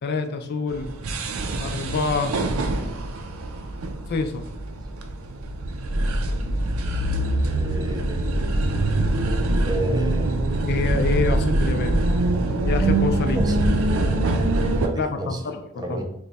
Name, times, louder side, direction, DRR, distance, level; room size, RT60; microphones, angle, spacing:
voice 1, 0.0-0.9 1.6-2.3 4.1-4.4 10.7-12.0 12.7-13.4 15.0-16.0, left 4 dB, 50° left, 7 dB, 0.4 m, -26 dB
sound 1, 0.7-14.9, right 1 dB, 85° right, 0.5 m, -24 dB
voice 2, 7.4-8.2 9.7-10.4 13.4-13.5 14.8-14.9 15.2-15.4 15.7-16.0, right 1 dB, 20° right, 4 dB, 0.4 m, -30 dB
3.1 x 2.2 x 3.9 m, 0.76 s
head